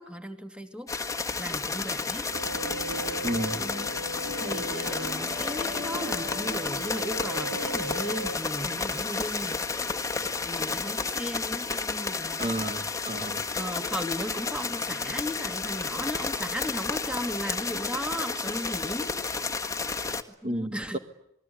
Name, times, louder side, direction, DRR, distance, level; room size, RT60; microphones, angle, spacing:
voice 1, 0.0-2.3 3.6-3.9 4.4-9.6 10.4-12.4 13.5-19.1 20.4-21.0, equal, 5° right, 7 dB, 2.5 m, -36 dB
sound 1, 0.9-20.2, left 4 dB, 15° left, 1.6 m, -31 dB
sound 2, 2.3-11.2, right 1 dB, 55° right, 3.9 m, -38 dB
voice 2, 3.2-3.6 12.4-13.4 20.4-21.0, right 1 dB, 35° right, 8 dB, 1.4 m, -31 dB
28.0 x 21.0 x 9.3 m, 0.79 s
head